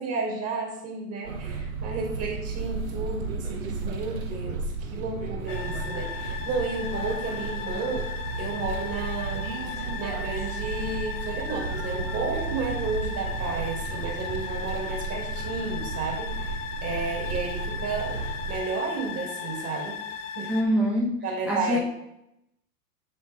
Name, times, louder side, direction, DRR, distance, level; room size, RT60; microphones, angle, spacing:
voice 1, 0.0-8.1 8.4-20.0 20.3-20.5 21.2-21.8, right 4 dB, 30° right, 0 dB, 2.8 m, -32 dB
sound 1, 1.2-18.6, right 4 dB, 55° right, 1.4 m, -33 dB
sound 2, 5.5-20.6, left 7 dB, 50° left, 1.3 m, -37 dB
voice 2, 20.5-21.1 21.5-21.8, equal, ahead, -3 dB, 0.4 m, -24 dB
7.8 x 7.1 x 3.6 m, 0.82 s
figure-of-eight pair, 105°, 48 cm